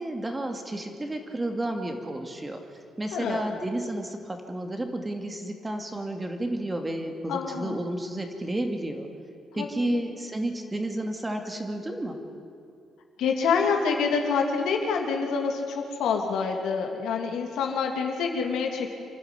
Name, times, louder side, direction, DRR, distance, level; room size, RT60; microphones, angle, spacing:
voice 1, 0.0-2.6 3.0-9.1 9.5-12.2, right 1 dB, 20° right, 4 dB, 2.6 m, -31 dB
voice 2, 3.1-3.5 7.3-7.8 9.5-10.0 13.2-18.9, left 5 dB, 80° left, 2 dB, 2.9 m, -27 dB
27.0 x 12.0 x 9.7 m, 2.4 s
cardioid pair, 90°, 0 cm